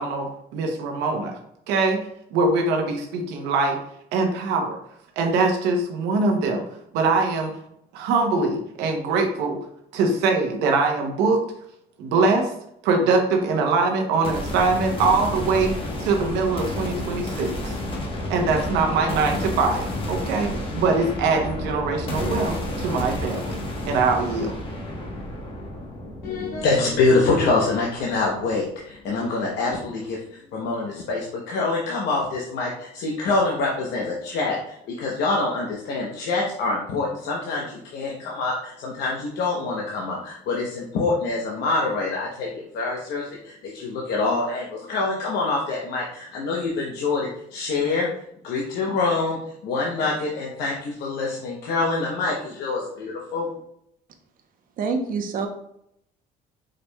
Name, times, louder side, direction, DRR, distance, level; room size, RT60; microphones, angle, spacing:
voice 1, 0.0-1.4 1.7-2.0 2.3-3.8 4.1-4.8 5.2-6.6 6.9-7.5 7.9-9.6 9.9-11.4 12.0-12.5 12.8-17.8 18.3-23.6 23.8-24.6, right 3 dB, 90° right, 2 dB, 0.7 m, -23 dB
sound 1, 14.2-28.2, left 1 dB, 30° left, 1.0 m, -31 dB
voice 2, 26.2-48.1 48.4-53.5, left 3 dB, 75° left, -2 dB, 0.8 m, -25 dB
voice 3, 54.8-55.5, right 4 dB, 55° right, 5 dB, 0.8 m, -26 dB
4.9 x 4.3 x 2.2 m, 0.75 s
cardioid pair, 110°, 17 cm